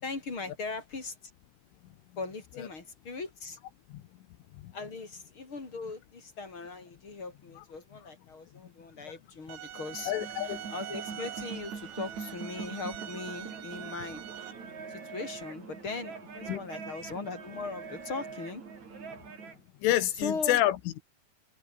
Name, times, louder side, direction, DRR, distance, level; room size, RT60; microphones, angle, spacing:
voice 1, 0.0-1.2 2.2-3.6 4.7-10.1 10.4-14.2 14.9-18.6 20.2-20.6, left 4 dB, 25° left, 4.9 m, -39 dB
sound 1, 9.5-14.5, right 11 dB, 80° right, 4.8 m, -43 dB
sound 2, 9.8-19.6, right 5 dB, 40° right, 5.1 m, -43 dB
voice 2, 10.1-10.6 16.5-16.6 19.8-21.0, left 14 dB, 85° left, 4.0 m, -27 dB
omnidirectional pair, 5.5 m